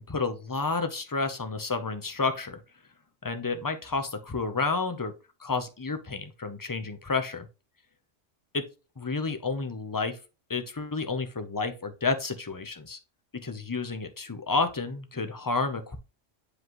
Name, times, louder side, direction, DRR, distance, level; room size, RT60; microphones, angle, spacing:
voice 1, 0.0-2.6 3.2-5.1 5.4-7.5 9.0-10.2 10.5-13.0 13.4-16.0, left 4 dB, 20° left, 8 dB, 0.6 m, -30 dB
7.8 x 5.1 x 3.1 m, 0.31 s
omnidirectional pair, 1.3 m